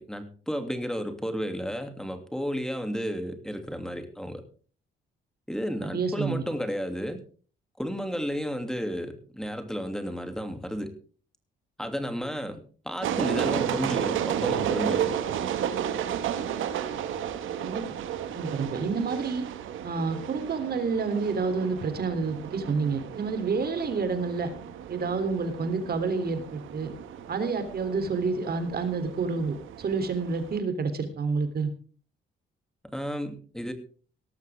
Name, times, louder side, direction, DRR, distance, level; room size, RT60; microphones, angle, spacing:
voice 1, 0.0-4.4 5.5-7.2 7.8-10.9 11.8-15.1 32.9-33.7, equal, 5° left, 7 dB, 2.7 m, -32 dB
voice 2, 5.9-6.4 17.6-17.8 18.3-19.4 19.8-24.5 24.9-26.9 27.3-31.7, right 4 dB, 50° right, 9 dB, 3.3 m, -29 dB
sound 1, 13.0-30.6, right 9 dB, 80° right, 2.1 m, -33 dB
18.5 x 13.5 x 3.6 m, 0.40 s
cardioid pair, 90°, 20 cm